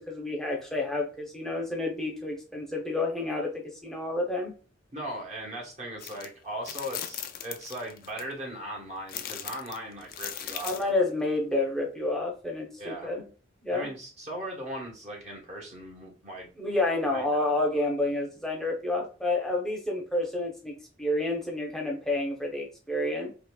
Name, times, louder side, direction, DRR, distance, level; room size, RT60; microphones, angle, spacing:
voice 1, 0.0-4.5 10.6-13.2 13.6-13.9 16.6-20.7 21.0-23.3, left 2 dB, ahead, -1 dB, 0.9 m, -29 dB
voice 2, 4.9-10.9 12.8-13.1 13.7-16.5 17.0-17.8, right 1 dB, 35° right, -1 dB, 1.3 m, -39 dB
sound 1, 6.0-6.3 6.6-8.2 9.1-10.9, left 10 dB, 50° left, 0.4 m, -38 dB
4.2 x 3.0 x 2.3 m, 0.37 s
head